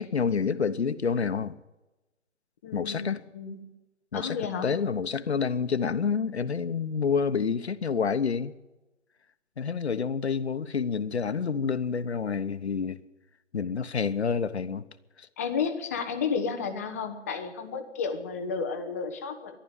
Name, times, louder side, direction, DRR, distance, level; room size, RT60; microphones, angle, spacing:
voice 1, 0.0-1.6 2.7-3.2 4.1-8.5 9.6-13.0 13.5-14.8 15.2-15.3, left 6 dB, 60° left, 1.1 m, -28 dB
voice 2, 2.6-3.7 4.1-4.7 15.4-19.6, left 5 dB, 15° left, 0.7 m, -32 dB
14.0 x 11.5 x 8.9 m
figure-of-eight pair, 150°, 37 cm